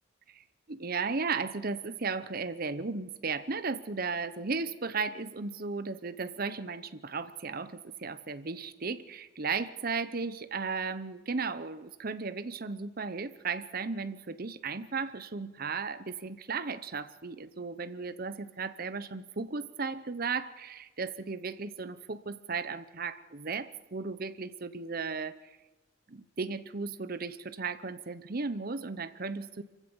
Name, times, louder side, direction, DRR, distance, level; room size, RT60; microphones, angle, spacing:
voice 1, 0.3-25.4 26.1-29.6, right 4 dB, 45° right, 13 dB, 0.8 m, -35 dB
25.0 x 16.0 x 7.2 m, 1.1 s
head